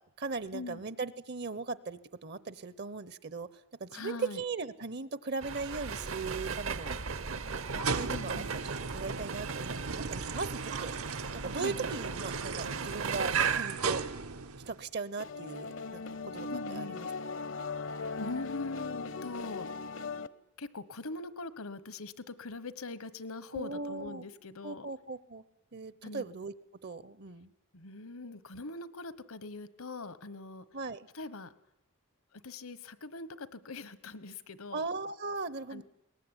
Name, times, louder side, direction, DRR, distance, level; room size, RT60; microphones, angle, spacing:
voice 1, 0.2-3.5 3.8-6.9 7.7-8.6 8.9-10.9 11.4-14.0 14.7-17.1 23.5-24.2 24.6-25.4 25.7-26.5 26.8-27.5 30.7-31.1 34.7-35.8, right 4 dB, 50° right, 17 dB, 0.8 m, -38 dB
voice 2, 3.9-4.4 8.1-8.5 11.5-11.8 16.5-17.0 18.2-19.7 20.6-24.9 26.0-26.2 27.7-30.6 31.1-31.5 32.3-34.8 35.7-35.8, left 3 dB, 75° left, 15 dB, 1.2 m, -42 dB
sound 1, 5.4-13.6, right 5 dB, 65° right, 1.1 m, -37 dB
sound 2, 7.6-14.8, right 5 dB, 80° right, 1.3 m, -36 dB
sound 3, 15.2-20.3, left 4 dB, 60° left, 0.8 m, -39 dB
21.5 x 19.5 x 9.9 m, 0.82 s
head